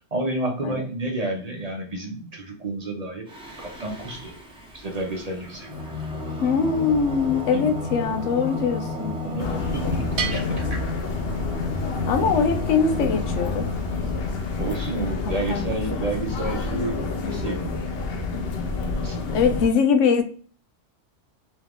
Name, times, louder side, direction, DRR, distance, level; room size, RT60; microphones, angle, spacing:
voice 1, 0.1-3.3 3.6-4.3 4.7-5.8 7.5-7.7 9.2-10.8 14.6-17.9 18.9-19.2, right 1 dB, 40° right, 1 dB, 0.8 m, -30 dB
Singing, 3.3-14.6, left 3 dB, 5° right, 0.9 m, -33 dB
voice 2, 6.4-9.1 12.1-13.6 15.5-15.6 19.3-20.2, left 6 dB, 85° left, 7 dB, 1.0 m, -22 dB
sound 1, 9.4-19.7, left 3 dB, 60° left, 0.9 m, -28 dB
Bell, 10.2-11.9, right 7 dB, 80° right, 0.9 m, -34 dB
3.7 x 3.1 x 3.4 m, 0.43 s
omnidirectional pair, 1.2 m